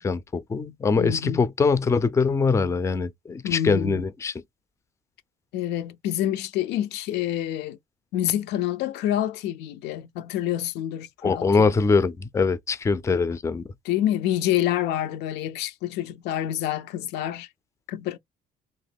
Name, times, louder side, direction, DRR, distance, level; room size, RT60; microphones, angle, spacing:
voice 1, 0.0-4.3 11.2-13.6, left 4 dB, 15° left, 0.4 m, -23 dB
voice 2, 1.0-1.4 3.4-4.1 5.5-7.8 8.1-11.8 13.8-17.5 17.9-18.2, left 12 dB, 85° left, 0.5 m, -27 dB
3.0 x 2.1 x 3.4 m
cardioid pair, 110°, 17 cm